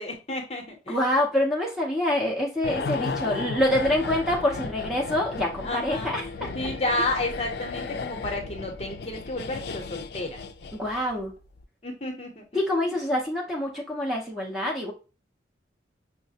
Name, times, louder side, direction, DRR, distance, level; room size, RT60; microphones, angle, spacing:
voice 1, 0.0-1.0 2.6-2.9 5.6-10.4 11.8-12.4, left 2 dB, 35° left, 2 dB, 0.7 m, -31 dB
voice 2, 0.9-6.2 10.7-11.3 12.5-14.9, left 1 dB, ahead, -3 dB, 0.5 m, -26 dB
sound 1, 2.6-11.2 11.4-11.6, left 4 dB, 60° left, 0.3 m, -35 dB
5.6 x 2.1 x 2.6 m, 0.33 s
head